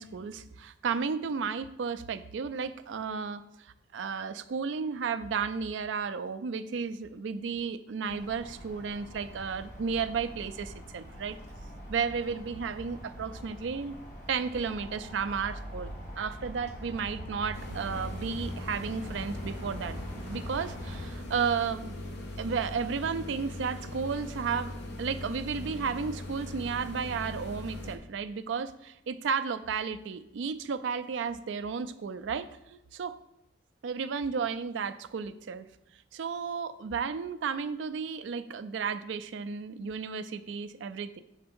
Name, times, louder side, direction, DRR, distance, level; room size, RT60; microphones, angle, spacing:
voice 1, 0.0-11.4 11.9-14.0 14.3-21.9 22.4-24.7 25.0-33.2 33.8-35.7 36.1-41.2, right 6 dB, 75° right, 12 dB, 0.4 m, -33 dB
sound 1, 8.1-21.1, equal, 45° left, 1.6 m, -44 dB
sound 2, 17.5-28.0, left 1 dB, 65° left, 0.9 m, -40 dB
6.4 x 3.4 x 5.3 m, 0.86 s
head